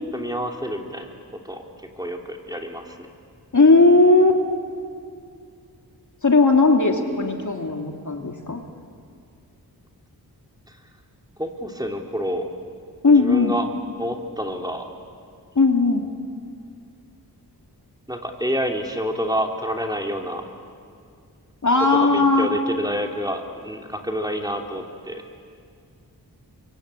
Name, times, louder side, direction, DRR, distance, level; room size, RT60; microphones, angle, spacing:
voice 1, 0.1-1.1 1.4-1.6 2.0-3.1 10.7-10.8 11.4-12.5 13.1-13.6 14.0-14.9 18.1-20.4 21.9-25.2, equal, 10° right, 2 dB, 3.2 m, -28 dB
voice 2, 3.5-4.4 6.2-8.6 13.0-13.6 15.5-16.1 21.6-22.5, left 3 dB, 45° left, 3 dB, 2.6 m, -17 dB
25.5 x 23.5 x 8.5 m, 2.3 s
cardioid pair, 45°, 40 cm